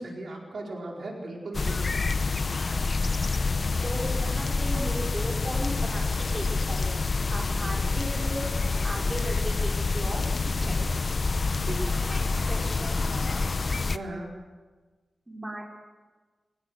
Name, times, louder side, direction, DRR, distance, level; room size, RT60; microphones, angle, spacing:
voice 1, 0.0-1.9 7.4-7.8 11.6-12.0 13.9-14.3, right 2 dB, 70° right, -1 dB, 4.6 m, -37 dB
sound 1, 1.5-14.0, left 3 dB, 45° left, 0.8 m, -27 dB
voice 2, 3.8-6.9 7.3-8.4 8.8-10.2 10.6-10.9 12.0-13.5 15.3-15.6, right 1 dB, 15° right, -2 dB, 5.3 m, -37 dB
24.0 x 19.5 x 6.6 m, 1.3 s
wide cardioid pair, 105°, 0 cm